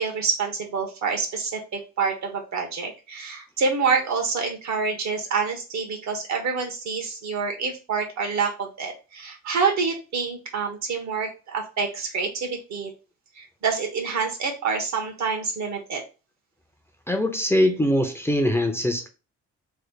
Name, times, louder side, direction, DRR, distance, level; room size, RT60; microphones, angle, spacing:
voice 1, 0.0-12.9 13.4-16.0, right 5 dB, 65° right, 1.2 m, -27 dB
voice 2, 17.1-19.1, left 1 dB, 10° left, 0.6 m, -22 dB
3.3 x 2.1 x 3.9 m
cardioid pair, 90°, 30 cm